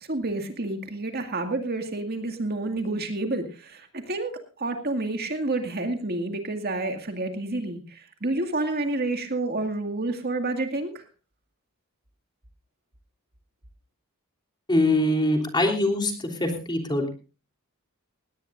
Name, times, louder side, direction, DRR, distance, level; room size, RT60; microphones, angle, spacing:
voice 1, 0.1-11.0, right 2 dB, 45° right, 5 dB, 2.1 m, -29 dB
voice 2, 14.7-16.1 16.4-17.1, left 1 dB, 20° left, 3 dB, 3.3 m, -23 dB
19.5 x 18.0 x 2.6 m, 0.33 s
head